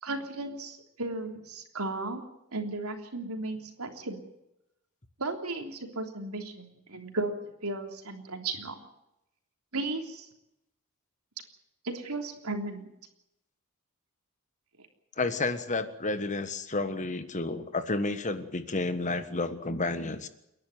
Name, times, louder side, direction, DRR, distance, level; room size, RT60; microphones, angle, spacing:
voice 1, 0.0-2.3 2.5-4.2 5.2-8.8 9.7-10.3 11.8-12.9, right 2 dB, 80° right, 4 dB, 3.4 m, -35 dB
voice 2, 15.2-20.3, left 3 dB, 35° left, 10 dB, 1.5 m, -31 dB
29.5 x 11.0 x 9.4 m, 0.86 s
head